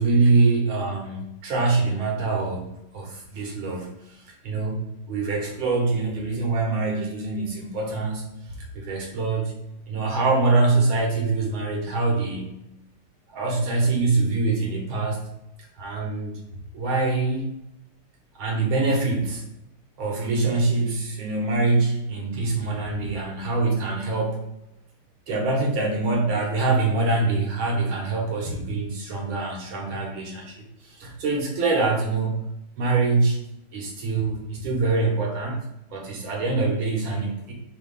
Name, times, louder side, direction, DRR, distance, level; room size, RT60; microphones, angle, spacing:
voice 1, 0.0-2.6 2.9-4.0 4.4-8.3 8.7-9.5 9.9-12.6 13.3-15.3 15.8-16.3 16.7-17.5 18.4-19.5 20.0-24.4 25.3-32.5 32.8-33.4 33.7-35.6 35.9-37.5, right 3 dB, 75° right, -2 dB, 2.3 m, -24 dB
5.8 x 3.1 x 5.6 m, 0.82 s
omnidirectional pair, 2.3 m